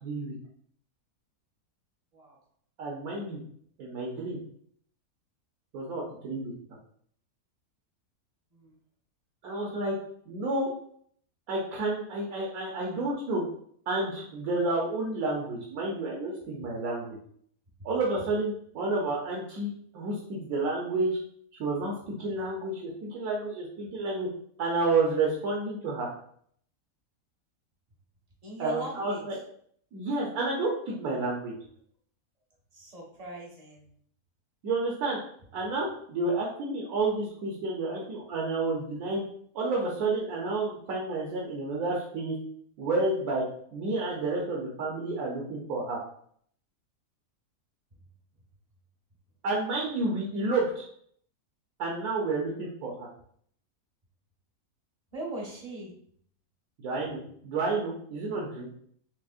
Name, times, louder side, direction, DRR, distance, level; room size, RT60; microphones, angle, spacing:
voice 1, 0.0-0.3 2.8-3.4 3.8-4.4 5.7-6.5 9.4-9.9 10.3-10.7 11.5-13.4 13.9-17.2 17.8-21.2 21.5-24.3 24.6-26.1 28.6-29.4 29.9-31.5 34.6-35.2 35.5-39.2 39.5-42.4 42.8-43.4 43.7-46.0 49.4-50.8 51.8-53.1 56.8-58.7, right 2 dB, 70° right, -3 dB, 1.2 m, -30 dB
voice 2, 28.4-29.2 32.7-33.9 55.1-55.9, right 2 dB, 35° right, -2 dB, 0.7 m, -39 dB
6.1 x 2.0 x 2.4 m, 0.63 s
omnidirectional pair, 1.6 m